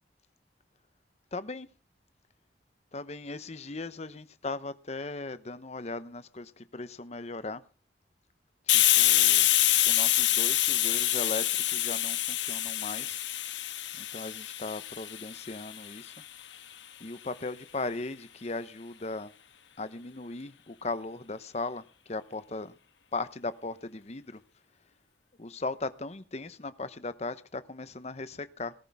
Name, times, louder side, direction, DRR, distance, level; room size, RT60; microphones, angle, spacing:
voice 1, 1.3-1.7 2.9-7.6 8.7-9.5 9.9-13.2 14.0-16.1 17.0-19.3 19.8-22.7 23.1-24.4 25.4-28.7, left 3 dB, 35° left, 0.9 m, -38 dB
Hiss, 8.7-16.1, left 13 dB, 80° left, 1.4 m, -26 dB
19.0 x 13.5 x 3.5 m
head